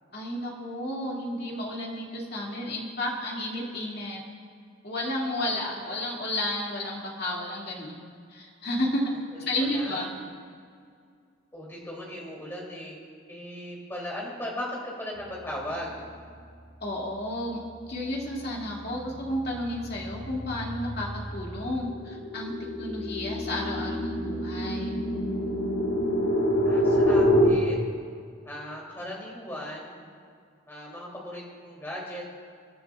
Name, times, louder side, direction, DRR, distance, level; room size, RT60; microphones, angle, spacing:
voice 1, 0.1-4.2 4.8-8.0 8.3-9.1 9.5-10.1 16.8-17.6 17.9-24.9, left 1 dB, 50° left, -3 dB, 2.5 m, -32 dB
voice 2, 5.4-6.0 9.4-10.1 11.5-13.0 13.3-15.9 26.6-27.9 28.4-30.1 30.7-32.3, left 1 dB, 10° left, -4 dB, 3.1 m, -38 dB
sound 1, 17.8-18.2 18.6-27.5, equal, 80° left, 2.9 m, -27 dB
26.0 x 11.0 x 2.5 m, 2.2 s
head